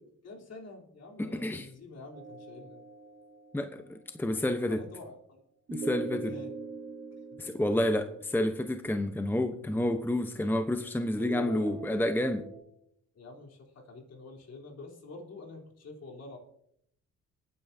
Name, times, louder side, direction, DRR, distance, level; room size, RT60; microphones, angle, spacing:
voice 1, 0.2-2.8 4.6-5.4 6.0-6.5 7.5-7.6 11.2-11.8 13.1-16.4, left 3 dB, 55° left, 0 dB, 3.7 m, -47 dB
voice 2, 1.2-1.7 3.5-4.8 5.7-6.3 7.4-12.4, left 1 dB, 5° left, 7 dB, 0.9 m, -29 dB
sound 1, 2.1-3.7 5.7-8.8 11.2-12.6, right 4 dB, 40° right, 3.5 m, -41 dB
27.5 x 9.4 x 2.8 m, 0.72 s
cardioid pair, 90°, 30 cm